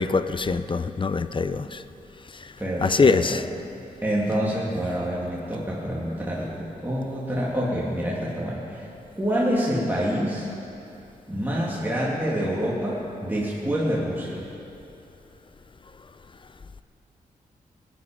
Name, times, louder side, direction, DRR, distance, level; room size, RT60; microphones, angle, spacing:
voice 1, 0.0-1.6 2.8-3.3, left 4 dB, 35° left, 12 dB, 0.6 m, -22 dB
voice 2, 2.6-3.4 4.0-8.9 9.2-10.5 11.3-14.4, equal, 15° right, -6 dB, 2.5 m, -27 dB
17.5 x 10.5 x 5.2 m, 2.8 s
cardioid pair, 60°, 15 cm